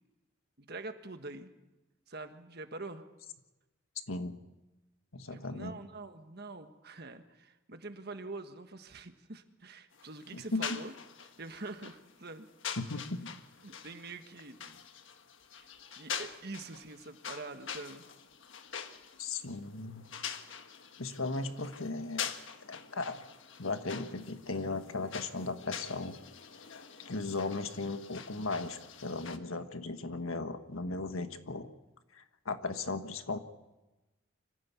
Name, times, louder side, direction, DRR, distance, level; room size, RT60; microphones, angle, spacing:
voice 1, 0.6-1.5 2.1-3.1 5.3-10.9 11.4-12.5 13.6-14.8 15.5-18.1, right 3 dB, 50° right, 7 dB, 1.6 m, -45 dB
voice 2, 4.1-4.4 5.1-5.8 10.3-10.8 12.8-13.3 19.2-20.0 21.0-22.3 22.7-23.2 23.6-26.2 27.0-31.7 32.1-33.4, left 3 dB, 85° left, 9 dB, 1.5 m, -37 dB
sound 1, 9.9-29.4, left 7 dB, 65° left, 1.4 m, -45 dB
25.0 x 15.0 x 8.4 m, 1.1 s
head